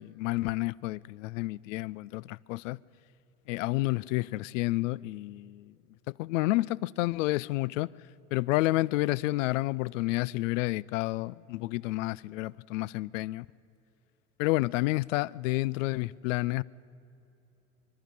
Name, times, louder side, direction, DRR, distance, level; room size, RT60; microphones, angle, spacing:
voice 1, 0.0-2.8 3.5-5.7 6.2-7.9 8.3-13.5 14.4-16.6, left 20 dB, 70° left, 0.5 m, -30 dB
24.5 x 11.5 x 9.8 m
hypercardioid pair, 80°, 40 cm